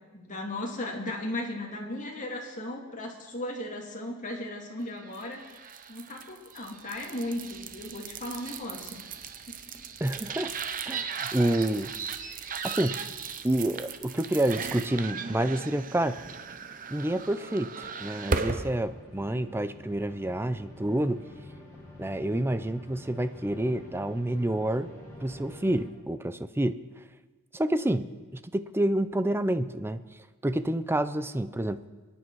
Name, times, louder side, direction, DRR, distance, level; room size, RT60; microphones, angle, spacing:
voice 1, 0.1-5.6 5.9-9.0 9.7-9.8, left 1 dB, 35° left, -1 dB, 2.4 m, -36 dB
sound 1, 5.1-18.7, right 5 dB, 40° right, 0.8 m, -37 dB
voice 2, 10.0-10.5 10.9-11.9 12.6-13.0 13.4-16.2 16.9-21.2 22.0-24.9 25.2-26.8 27.5-30.0 30.4-31.8, right 1 dB, 10° right, 12 dB, 0.5 m, -28 dB
sound 2, 18.3-25.9, left 1 dB, 15° left, 5.4 m, -48 dB
27.0 x 10.0 x 4.7 m, 1.3 s
head